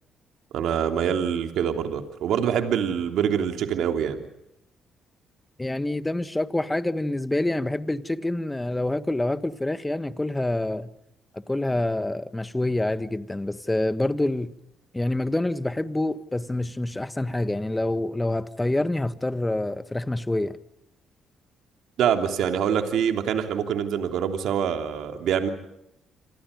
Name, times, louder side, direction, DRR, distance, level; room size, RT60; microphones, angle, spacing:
voice 1, 0.5-4.3 22.0-25.5, right 8 dB, 80° right, 3.2 m, -25 dB
voice 2, 5.6-10.9 11.3-14.5 14.9-20.6, left 1 dB, 10° left, 1.5 m, -27 dB
27.5 x 27.5 x 5.3 m
cardioid pair, 90°, 0 cm